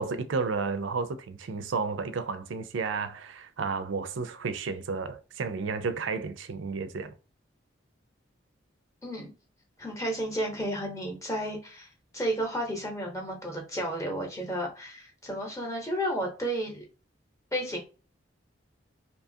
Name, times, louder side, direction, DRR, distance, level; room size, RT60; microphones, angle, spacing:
voice 1, 0.0-7.1, right 4 dB, 80° right, 0.4 m, -32 dB
voice 2, 9.8-16.8 17.5-17.8, right 1 dB, 15° left, 0.8 m, -32 dB
2.8 x 2.3 x 2.6 m
head